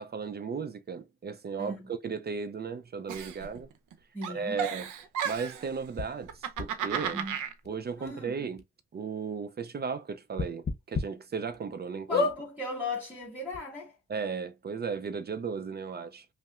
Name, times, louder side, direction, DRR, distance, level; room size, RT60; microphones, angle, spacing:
voice 1, 0.0-3.7 4.3-4.9 5.2-7.2 7.7-8.6 8.9-12.3 14.1-16.3, right 5 dB, 35° right, 0.5 m, -35 dB
voice 2, 1.6-1.9 4.1-4.6 7.1-7.4 8.0-8.3 12.1-14.0, left 2 dB, 5° right, 1.9 m, -37 dB
Giggle, 3.1-3.9 4.2-5.7 6.2-7.5, right 8 dB, 80° right, 0.8 m, -34 dB
sound 1, 6.0-6.1 6.6-6.7 7.6-7.7 8.1-8.2 8.6-8.7 10.3-11.0 11.5-11.6 12.1-12.4 13.2-13.3 13.5-13.6, left 4 dB, 35° left, 0.9 m, -28 dB
5.4 x 2.1 x 2.4 m
cardioid pair, 90°, 30 cm